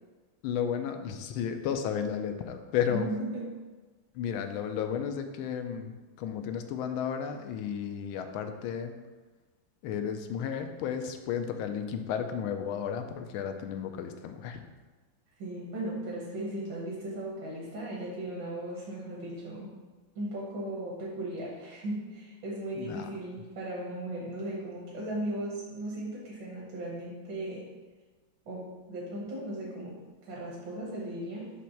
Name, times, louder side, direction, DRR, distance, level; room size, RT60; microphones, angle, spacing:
voice 1, 0.4-3.1 4.1-8.9 9.8-14.6 22.8-23.1, left 8 dB, 90° left, 7 dB, 1.4 m, -33 dB
voice 2, 2.9-3.6 15.4-19.7 20.1-27.7 28.5-31.6, right 1 dB, 70° right, -4 dB, 1.8 m, -37 dB
6.0 x 3.1 x 5.7 m, 1.3 s
omnidirectional pair, 2.2 m